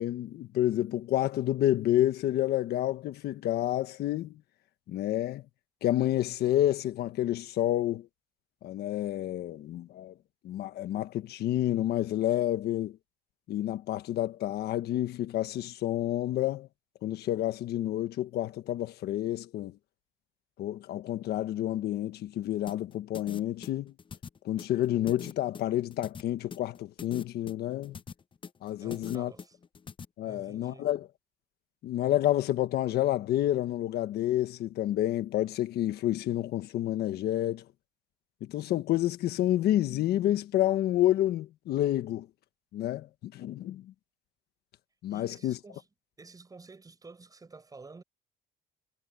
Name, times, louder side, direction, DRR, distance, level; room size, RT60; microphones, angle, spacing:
voice 1, 0.0-4.4 4.9-5.4 5.8-8.1 8.6-10.1 10.4-13.0 13.5-16.7 17.0-19.8 20.6-23.9 24.4-28.0 28.6-29.3 30.2-31.1 31.8-37.6 38.4-42.3 42.7-43.9 45.0-45.6, left 13 dB, 70° left, 1.4 m, -29 dB
sound 1, 22.7-30.0, left 6 dB, 30° left, 0.9 m, -43 dB
voice 2, 28.8-29.6 30.2-30.9 45.1-45.9 46.2-48.0, right 4 dB, 20° right, 5.6 m, -50 dB
cardioid pair, 110°, 17 cm